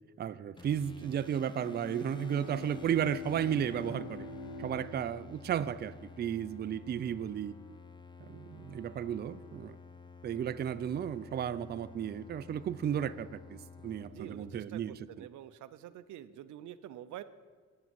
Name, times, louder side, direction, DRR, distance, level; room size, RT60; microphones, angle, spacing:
voice 1, 0.2-4.3 4.6-7.5 8.2-9.8 10.2-15.3, right 9 dB, 35° right, 14 dB, 0.4 m, -34 dB
sound 1, 0.6-14.7, left 4 dB, 15° left, 0.7 m, -51 dB
Bowed string instrument, 1.4-6.2, left 1 dB, 75° left, 0.6 m, -46 dB
voice 2, 14.1-17.2, right 11 dB, 75° right, 13 dB, 0.6 m, -47 dB
9.0 x 6.1 x 7.0 m, 1.5 s
cardioid pair, 90°, 30 cm